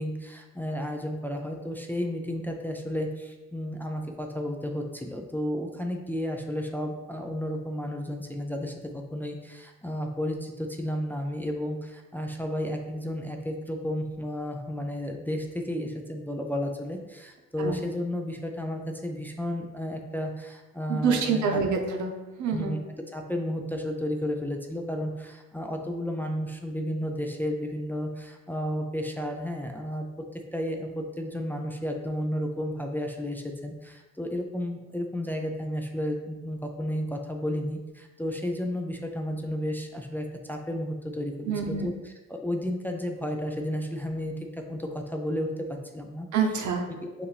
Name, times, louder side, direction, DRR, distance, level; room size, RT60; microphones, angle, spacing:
voice 1, 0.0-21.6 22.5-46.3 46.9-47.3, equal, 5° left, 2 dB, 0.5 m, -32 dB
voice 2, 20.9-22.1 22.4-22.8 41.5-41.9 46.3-46.8, right 5 dB, 75° right, 3 dB, 0.8 m, -26 dB
5.5 x 2.6 x 3.3 m, 1.1 s
cardioid pair, 90°, 30 cm